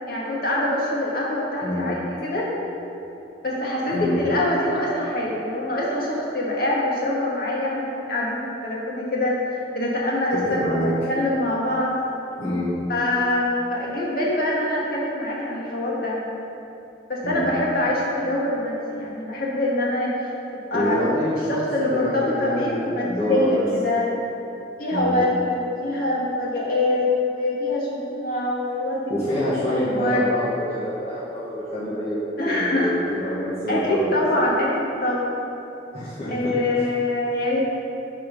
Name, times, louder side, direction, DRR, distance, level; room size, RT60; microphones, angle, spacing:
voice 1, 0.1-2.5 3.4-10.8 11.1-12.0 12.9-16.2 17.1-20.3 20.7-21.1 21.5-24.1 24.8-29.1 29.5-29.6 30.0-30.3 32.4-33.0 33.7-35.4 36.3-37.6, left 1 dB, 50° left, -5 dB, 1.7 m, -24 dB
voice 2, 10.3-10.9 12.4-12.7 17.2-17.5 20.7-21.6 21.9-23.6 24.9-25.2 29.1-34.1 35.9-36.9, equal, 30° left, -12 dB, 1.7 m, -26 dB
10.5 x 4.3 x 5.3 m, 2.9 s
head